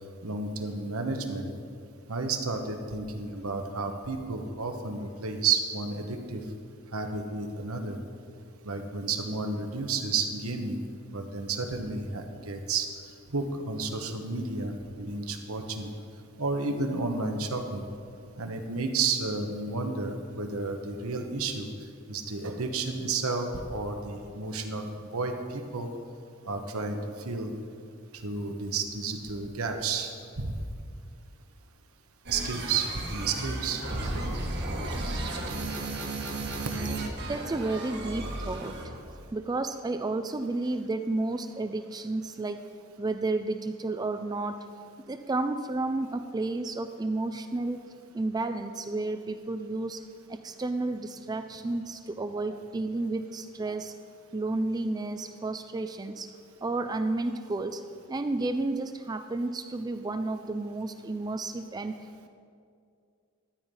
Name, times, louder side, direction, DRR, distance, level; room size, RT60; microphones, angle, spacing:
voice 1, 0.2-1.5 2.1-6.4 6.9-8.0 8.6-10.8 11.1-12.9 13.3-15.9 16.4-17.9 18.4-21.7 22.1-25.9 26.4-27.6 28.2-30.6 32.3-34.2, right 4 dB, 80° right, 5 dB, 1.2 m, -31 dB
sound 1, 32.3-39.0, right 2 dB, 50° right, 1.6 m, -34 dB
voice 2, 37.3-38.8 39.3-42.6 43.0-44.6 45.1-47.8 48.1-50.0 50.3-53.9 54.3-56.3 56.6-57.8 58.1-62.0, right 2 dB, 20° right, 8 dB, 0.3 m, -31 dB
13.0 x 8.9 x 5.5 m, 2.3 s
head